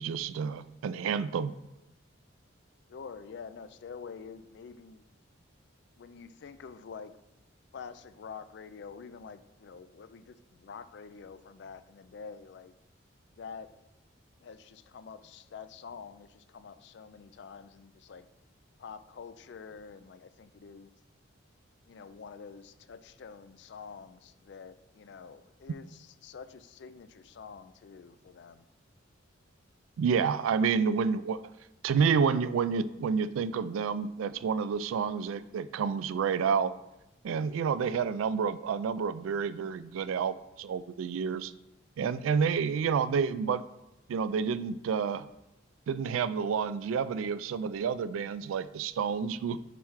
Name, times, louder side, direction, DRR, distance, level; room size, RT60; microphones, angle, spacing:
voice 1, 0.0-1.5 30.0-31.4 31.8-36.8 37.2-41.5 42.0-43.6 44.1-45.3 45.9-49.6, right 6 dB, 85° right, 15 dB, 0.3 m, -29 dB
voice 2, 2.9-5.0 6.0-7.1 7.7-12.7 13.4-13.7 14.4-18.3 18.8-20.9 21.9-28.7, left 6 dB, 60° left, 13 dB, 0.3 m, -47 dB
6.8 x 3.2 x 4.8 m, 0.94 s
head